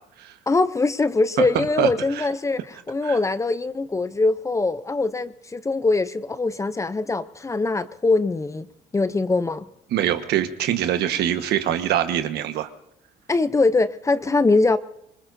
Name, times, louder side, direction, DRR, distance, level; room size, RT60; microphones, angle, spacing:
voice 1, 0.5-8.7 8.9-9.7 13.3-14.8, left 3 dB, 20° left, 0.6 m, -22 dB
voice 2, 9.9-12.7, right 11 dB, 75° right, 1.4 m, -23 dB
25.5 x 21.0 x 2.7 m
cardioid pair, 110°, 17 cm